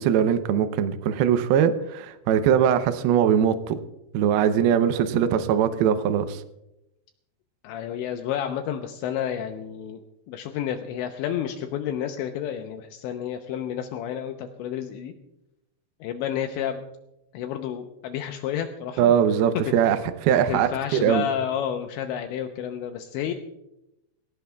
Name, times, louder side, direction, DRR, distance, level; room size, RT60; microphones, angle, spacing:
voice 1, 0.0-3.8 4.1-6.4 19.0-21.3, right 9 dB, 90° right, 9 dB, 2.1 m, -21 dB
voice 2, 7.6-10.0 10.3-15.1 16.0-16.8 17.3-19.2 20.3-23.3, left 9 dB, 80° left, 5 dB, 2.9 m, -30 dB
23.5 x 17.0 x 2.3 m, 0.89 s
omnidirectional pair, 5.5 m